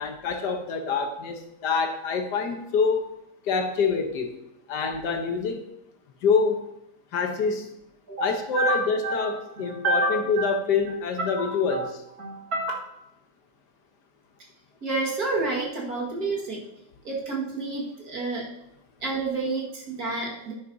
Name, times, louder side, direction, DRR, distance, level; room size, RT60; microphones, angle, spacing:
voice 1, 0.0-3.1 3.5-4.4 4.7-5.7 6.2-6.6 7.1-7.7 8.2-11.9, left 5 dB, 75° left, 5 dB, 1.6 m, -26 dB
voice 2, 8.1-10.6 11.2-11.9 12.2-12.8 14.8-16.6 17.0-18.5 19.0-20.5, right 2 dB, 60° right, -3 dB, 2.3 m, -29 dB
10.5 x 9.2 x 2.7 m, 0.85 s
omnidirectional pair, 1.9 m